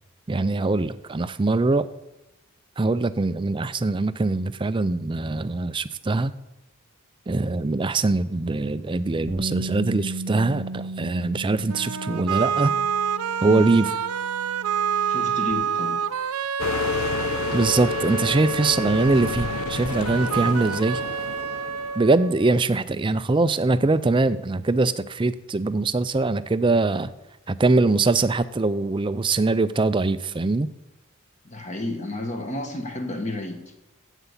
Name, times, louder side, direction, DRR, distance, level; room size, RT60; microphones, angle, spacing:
voice 1, 0.3-1.9 2.8-6.3 7.3-12.7 13.4-13.9 17.5-21.0 22.0-27.1 27.5-30.7, right 3 dB, 20° right, 14 dB, 0.4 m, -22 dB
Bass guitar, 9.3-15.5, right 2 dB, 50° right, 0.8 m, -35 dB
sound 1, 11.7-22.7, right 8 dB, 90° right, 0.6 m, -28 dB
voice 2, 15.1-16.0 18.1-18.2 31.4-33.6, left 2 dB, 30° left, 5 dB, 1.5 m, -31 dB
sound 2, 16.6-22.2, left 6 dB, 70° left, 0.5 m, -30 dB
9.6 x 8.2 x 8.3 m, 1.0 s
head